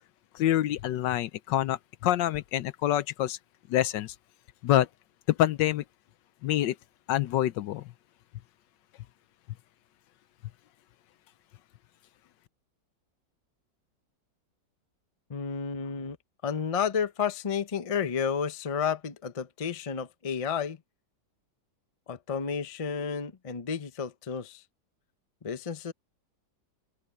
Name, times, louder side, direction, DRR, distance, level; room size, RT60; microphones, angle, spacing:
voice 1, 0.3-3.4 3.7-4.1 4.6-4.9 5.3-5.8 6.4-6.8 7.1-7.9, left 13 dB, 75° left, 1.3 m, -26 dB
voice 2, 15.3-16.2 16.4-20.8 22.1-24.6 25.4-25.9, left 7 dB, 40° left, 0.4 m, -31 dB
open air
omnidirectional pair, 2.0 m